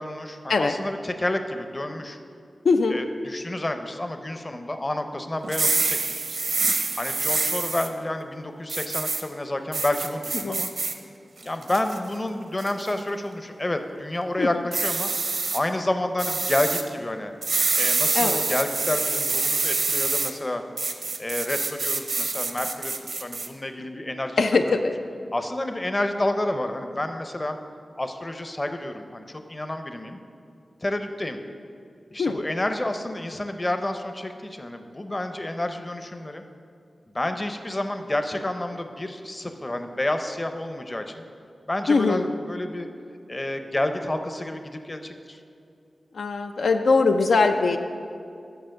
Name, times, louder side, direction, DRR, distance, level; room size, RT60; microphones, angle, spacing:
voice 1, 0.0-2.2 2.9-6.4 6.9-10.7 11.4-15.1 15.5-17.3 17.8-20.6 21.2-24.8 25.3-27.6 28.0-30.2 30.8-31.4 32.1-36.4 37.1-41.1 41.7-42.9 43.3-45.4, left 1 dB, 30° left, 7 dB, 0.6 m, -29 dB
voice 2, 2.6-3.0 10.4-10.6 14.4-14.6 18.1-18.4 24.4-24.9 32.2-32.4 41.9-42.3 46.1-47.8, left 4 dB, 90° left, 5 dB, 0.3 m, -21 dB
sound 1, 5.4-7.9 8.7-9.2 9.7-10.9 11.4-12.0 12.6-12.9 14.7-15.6 16.2-16.8 17.4-20.3 20.8-23.5, right 3 dB, 70° right, 0.6 m, -26 dB
6.8 x 5.7 x 6.4 m, 2.5 s
cardioid pair, 55°, 0 cm